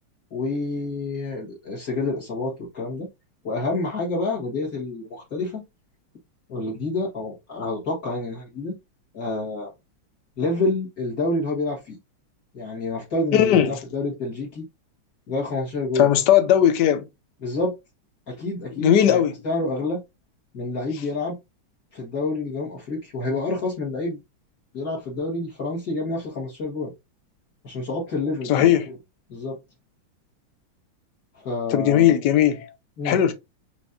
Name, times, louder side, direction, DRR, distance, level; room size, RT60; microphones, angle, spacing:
voice 1, 0.3-3.1 3.4-5.6 6.5-8.7 9.1-9.7 10.4-12.0 12.5-14.6 15.3-16.1 17.4-17.7 18.3-20.0 20.5-21.4 21.9-24.2 24.7-26.9 27.6-28.8 29.3-29.6 31.4-32.1 33.0-33.2, left 2 dB, 45° left, 1.9 m, -28 dB
voice 2, 13.3-13.7 16.0-17.0 18.8-19.3 28.5-28.9 31.7-32.7 33.0-33.3, left 10 dB, 65° left, 1.1 m, -18 dB
5.2 x 3.1 x 2.6 m
omnidirectional pair, 2.3 m